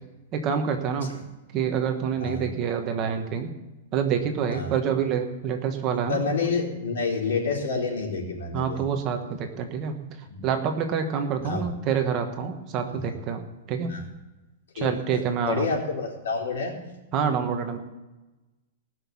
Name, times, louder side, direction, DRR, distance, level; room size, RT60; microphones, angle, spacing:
voice 1, 0.3-1.1 1.5-3.5 3.9-6.3 8.5-9.9 10.4-13.9 14.7-15.7 17.1-17.8, right 7 dB, 25° right, 5 dB, 1.2 m, -27 dB
voice 2, 6.1-8.8 10.3-10.5 11.4-11.7 12.9-13.1 13.9-14.0 14.8-16.8, left 4 dB, 90° left, -1 dB, 4.2 m, -29 dB
19.0 x 6.4 x 7.1 m, 1.1 s
supercardioid pair, 175°, 0 cm